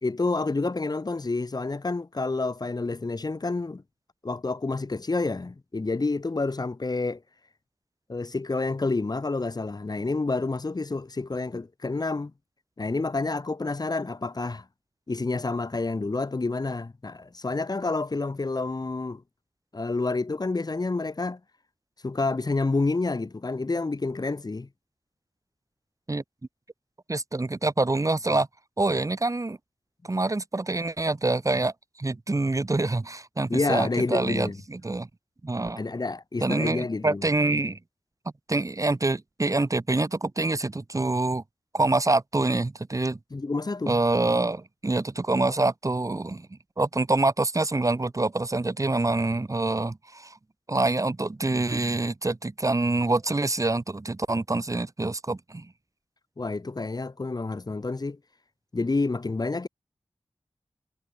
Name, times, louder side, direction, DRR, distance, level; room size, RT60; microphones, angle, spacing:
voice 1, 0.0-3.8 4.2-7.2 8.1-12.3 12.8-14.6 15.1-19.2 19.7-21.4 22.0-24.7 33.5-34.6 35.8-37.2 43.3-44.0 56.4-58.2 58.7-59.7, left 3 dB, 45° left, 2.8 m, -29 dB
voice 2, 27.1-28.5 28.8-29.6 30.0-35.1 35.4-35.8 36.4-37.8 38.5-41.4 41.7-43.2 43.9-46.5 46.8-50.4 50.7-55.7, right 2 dB, 35° right, 2.9 m, -26 dB
wide cardioid pair, 65°, 9 cm